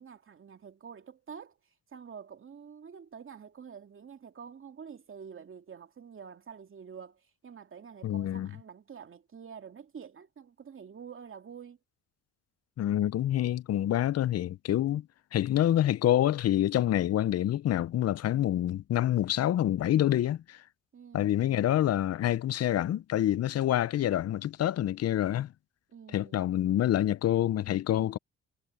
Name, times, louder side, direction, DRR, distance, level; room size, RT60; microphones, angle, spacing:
voice 1, 0.0-1.6 1.9-11.8 20.9-21.6 25.9-26.6, right 7 dB, 45° right, 2.4 m, -47 dB
voice 2, 8.0-8.5 12.8-15.1 15.3-20.6 21.1-25.5 26.1-28.2, left 12 dB, 55° left, 0.7 m, -27 dB
cardioid pair, 90°, 30 cm